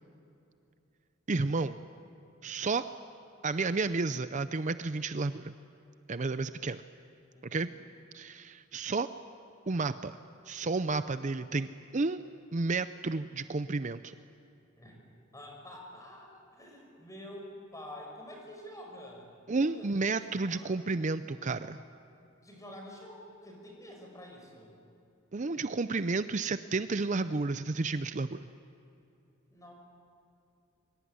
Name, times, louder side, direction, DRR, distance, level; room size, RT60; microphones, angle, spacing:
voice 1, 1.3-1.8 2.4-2.9 3.4-5.5 6.1-6.8 7.5-7.7 8.1-9.1 9.7-10.1 10.5-12.2 12.5-14.1 19.5-21.8 25.3-28.4, right 3 dB, 40° right, 12 dB, 0.6 m, -31 dB
voice 2, 7.3-7.8 14.8-15.0 15.3-20.8 22.2-24.7 29.5-29.7, left 1 dB, 15° left, 1 dB, 6.0 m, -48 dB
24.5 x 24.0 x 9.6 m, 2.7 s
head